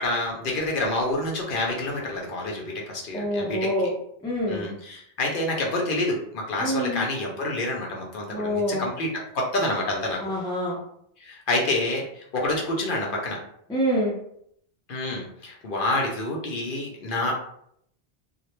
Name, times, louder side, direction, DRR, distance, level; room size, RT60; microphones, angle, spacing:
voice 1, 0.0-3.7 4.5-10.2 11.2-13.4 14.9-17.3, left 2 dB, 60° left, -1 dB, 0.7 m, -28 dB
voice 2, 3.1-3.9 4.2-4.7 6.6-7.0 8.3-8.9 10.2-10.8 13.7-14.1, equal, 5° left, -4 dB, 0.4 m, -26 dB
2.2 x 2.0 x 2.9 m, 0.70 s
omnidirectional pair, 1.1 m